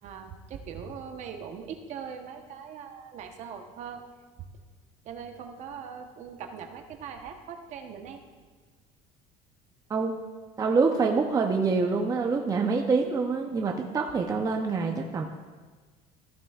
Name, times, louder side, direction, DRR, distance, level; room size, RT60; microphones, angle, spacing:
voice 1, 0.0-4.1 5.0-8.2, right 7 dB, 50° right, 5 dB, 1.0 m, -41 dB
voice 2, 10.6-15.2, right 4 dB, 25° right, 2 dB, 0.6 m, -26 dB
14.5 x 9.7 x 2.4 m, 1.4 s
cardioid pair, 135°, 15 cm